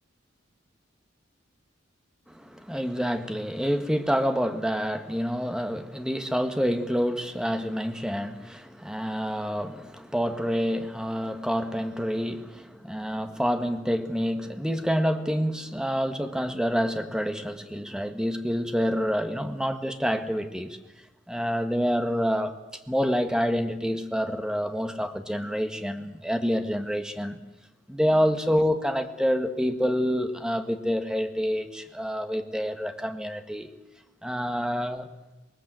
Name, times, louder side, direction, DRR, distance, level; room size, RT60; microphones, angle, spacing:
voice 1, 2.3-20.8 21.3-22.6 22.9-27.4 27.9-33.7 34.2-35.1, equal, 5° right, 6 dB, 1.6 m, -27 dB
25.5 x 20.5 x 7.8 m, 1.0 s
head